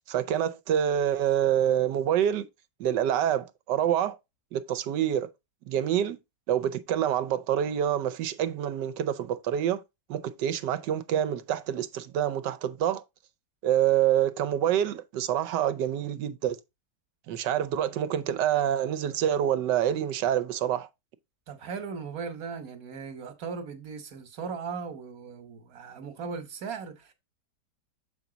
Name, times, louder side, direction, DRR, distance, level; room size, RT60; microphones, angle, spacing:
voice 1, 0.1-2.5 2.8-4.2 4.5-5.3 5.7-6.2 6.5-9.8 10.1-13.0 13.6-16.6 17.3-20.9, right 10 dB, 80° right, 1.3 m, -26 dB
voice 2, 21.5-27.1, right 5 dB, 60° right, 1.6 m, -38 dB
7.1 x 4.6 x 3.8 m
omnidirectional pair, 1.9 m